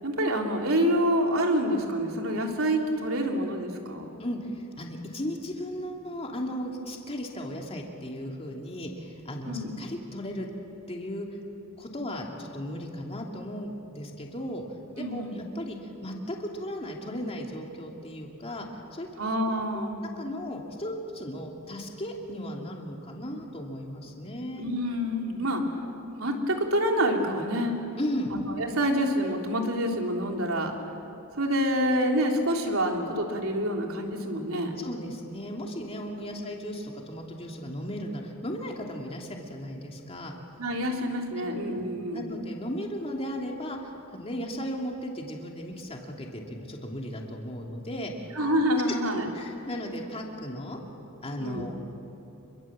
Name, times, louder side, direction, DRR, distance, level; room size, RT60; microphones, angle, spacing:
voice 1, 0.0-4.1 9.4-9.8 15.0-15.4 19.2-20.1 24.6-25.6 26.2-27.8 28.3-30.7 31.4-34.8 36.2-36.3 40.6-42.2 48.3-49.3 51.4-51.6, equal, 80° right, 2 dB, 3.2 m, -27 dB
voice 2, 4.2-10.5 10.9-11.4 11.8-14.6 15.0-18.7 18.9-19.1 19.5-19.9 20.2-24.7 25.8-26.0 28.0-28.4 34.8-40.3 41.4-41.6 42.1-48.1 49.3-50.8 51.2-51.7, equal, 30° left, 0 dB, 2.8 m, -36 dB
28.0 x 23.0 x 7.6 m, 2.8 s
head